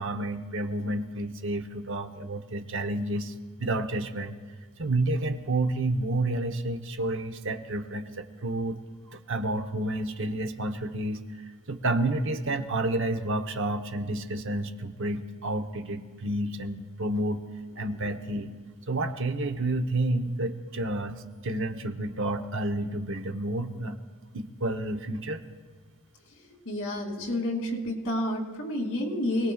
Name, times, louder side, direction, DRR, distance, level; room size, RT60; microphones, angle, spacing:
voice 1, 0.0-4.4 4.8-8.8 9.1-11.2 11.7-17.4 17.8-18.5 18.9-24.0 24.3-25.4, right 2 dB, 60° right, 6 dB, 0.9 m, -30 dB
voice 2, 26.6-29.5, left 1 dB, 65° left, -1 dB, 2.9 m, -29 dB
25.0 x 18.0 x 2.4 m, 1.5 s
head